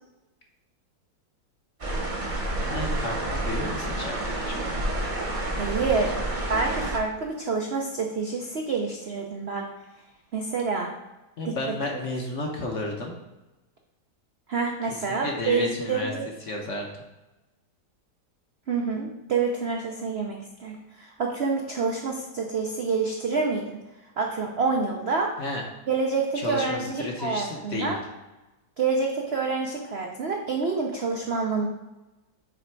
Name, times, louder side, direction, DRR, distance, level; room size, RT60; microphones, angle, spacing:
sound 1, 1.8-7.0, right 1 dB, 35° right, 0.9 m, -29 dB
voice 1, 2.6-4.8 5.8-6.2 11.4-13.1 14.9-16.1 16.4-16.9 25.4-25.6 26.3-28.0, left 2 dB, 55° left, 1 dB, 0.9 m, -33 dB
voice 2, 5.5-6.1 6.5-9.7 10.3-10.9 11.4-11.6 14.5-16.3 18.7-23.6 24.2-25.3 25.9-28.0 28.8-31.7, right 4 dB, 80° right, 1 dB, 0.5 m, -27 dB
7.6 x 3.3 x 4.5 m, 1.1 s
omnidirectional pair, 2.0 m